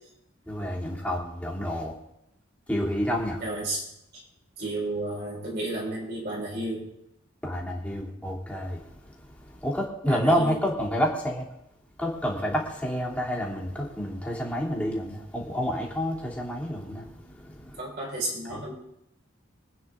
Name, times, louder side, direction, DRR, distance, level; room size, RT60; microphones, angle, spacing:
voice 1, 0.5-1.9 2.7-3.4 7.4-11.4 12.0-17.8 18.5-18.6, equal, 5° left, -4 dB, 3.2 m, -29 dB
voice 2, 3.4-4.2 4.6-6.8 10.1-10.6 17.8-18.7, right 2 dB, 60° right, -4 dB, 4.9 m, -32 dB
25.5 x 9.4 x 3.8 m, 0.82 s
head